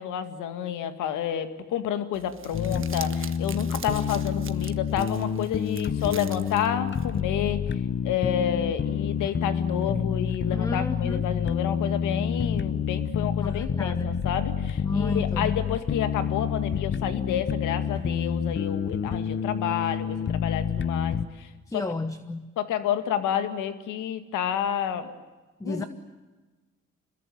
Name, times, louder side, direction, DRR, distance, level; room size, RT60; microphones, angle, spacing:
voice 1, 0.0-7.6 8.0-21.8 22.6-25.1 25.6-25.8, left 9 dB, 90° left, 10 dB, 2.1 m, -30 dB
Crumpling crinkling, 2.1-7.2, right 7 dB, 40° right, 1.4 m, -43 dB
sound 1, 2.5-21.2, left 7 dB, 40° left, 1.0 m, -28 dB
voice 2, 10.5-11.2 13.4-14.2 14.8-15.7 21.7-22.5 25.6-25.8, left 2 dB, 10° left, 11 dB, 1.2 m, -32 dB
26.0 x 21.0 x 9.4 m, 1.3 s
cardioid pair, 90°, 30 cm